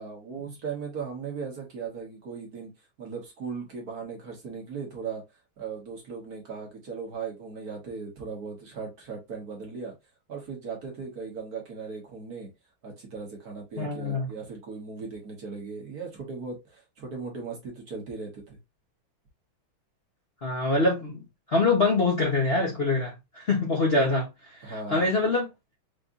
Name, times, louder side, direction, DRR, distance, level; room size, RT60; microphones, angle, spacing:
voice 1, 0.0-2.7 3.0-5.2 5.6-9.9 10.3-12.5 12.8-18.6 24.6-25.2, right 5 dB, 50° right, 1.9 m, -38 dB
voice 2, 13.8-14.3 20.4-21.2 21.5-25.5, left 3 dB, 40° left, 1.1 m, -25 dB
5.0 x 3.4 x 2.6 m
omnidirectional pair, 2.3 m